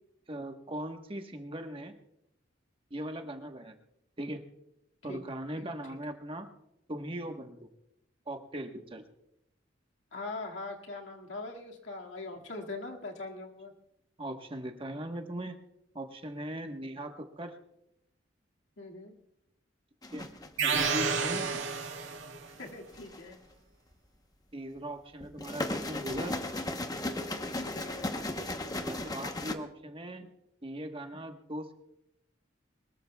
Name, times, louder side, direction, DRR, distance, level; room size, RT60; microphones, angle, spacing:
voice 1, 0.3-1.9 2.9-3.7 4.2-4.4 5.0-6.5 6.9-7.7 8.3-9.0 14.2-15.6 15.9-17.6 20.1-20.3 20.6-21.5 24.5-26.4 28.8-30.3 30.6-31.7, right 1 dB, 30° right, 5 dB, 1.2 m, -39 dB
voice 2, 5.6-6.0 10.1-13.7 18.8-19.2 22.6-23.4 27.5-28.2, left 2 dB, 75° left, 1 dB, 2.1 m, -42 dB
sound 1, 20.0-20.7 22.6-23.3 25.2-29.6, left 2 dB, 20° left, 0.9 m, -36 dB
sound 2, 20.6-22.5, right 5 dB, 85° right, 1.9 m, -30 dB
23.0 x 20.5 x 2.3 m, 0.82 s
head